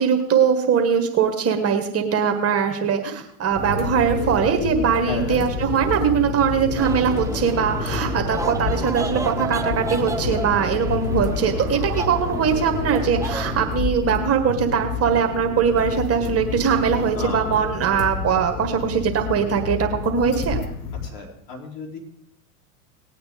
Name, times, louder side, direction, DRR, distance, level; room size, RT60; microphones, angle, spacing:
voice 1, 0.0-20.6, right 7 dB, 30° right, 5 dB, 1.6 m, -21 dB
sound 1, 3.4-21.1, left 5 dB, 75° left, 1.3 m, -29 dB
voice 2, 5.1-5.4 17.1-17.6 21.0-22.0, left 2 dB, 45° left, 0 dB, 3.7 m, -32 dB
sound 2, 6.8-13.7, right 3 dB, 5° right, 0.7 m, -32 dB
19.0 x 8.8 x 3.7 m, 0.71 s
hypercardioid pair, 100°, 45 cm